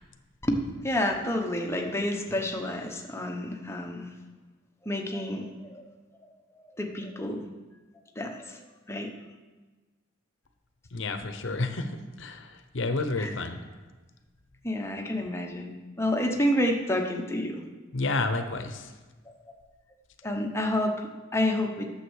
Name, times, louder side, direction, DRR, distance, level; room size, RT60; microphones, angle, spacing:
voice 1, 0.4-4.1 4.8-5.8 6.6-7.4 8.2-8.6 8.9-9.1 13.2-13.3 14.6-17.6 19.3-19.4 20.2-21.9, left 1 dB, 15° left, 2 dB, 1.0 m, -29 dB
voice 2, 10.9-13.6 17.9-18.9, left 3 dB, 65° left, 8 dB, 0.9 m, -30 dB
9.8 x 7.2 x 6.4 m, 1.3 s
head